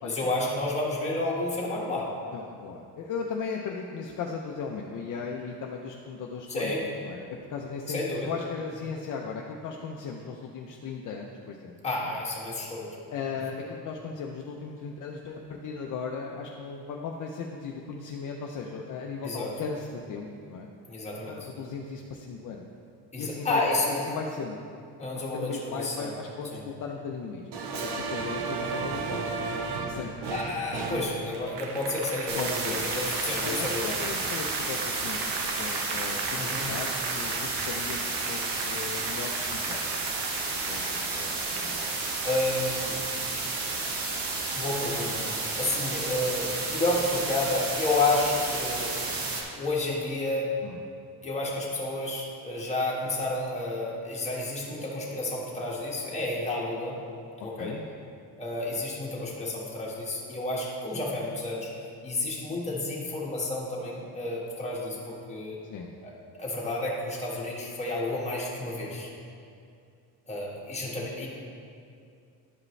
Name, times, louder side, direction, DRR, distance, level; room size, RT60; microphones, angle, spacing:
voice 1, 0.0-2.1 6.5-6.8 7.9-8.4 11.8-12.9 19.2-19.5 20.9-21.5 23.1-24.1 25.0-26.1 26.5-26.6 27.8-28.0 30.3-33.9 36.4-36.7 40.9-41.1 41.8-41.9 42.2-43.2 44.5-48.9 49.6-50.5 51.2-57.0 57.4-57.7 58.4-61.7 62.0-65.6 66.0-69.1 70.3-71.3, left 2 dB, 15° left, -5 dB, 1.6 m, -31 dB
voice 2, 2.3-6.7 7.0-11.8 13.1-20.7 21.3-22.6 23.2-23.6 23.9-24.6 25.1-29.3 29.8-30.1 30.9-31.1 32.4-32.8 33.4-35.3 35.6-39.9 40.7-41.3 50.6-50.8 57.6-57.9 65.7-65.9, left 5 dB, 50° left, 0 dB, 0.6 m, -37 dB
Applause, 27.5-44.3 44.7-45.9, right 4 dB, 80° right, 0.9 m, -36 dB
sound 1, 32.3-49.4, right 3 dB, 60° right, 1.3 m, -32 dB
12.0 x 5.0 x 3.2 m, 2.4 s
cardioid pair, 135°, 40 cm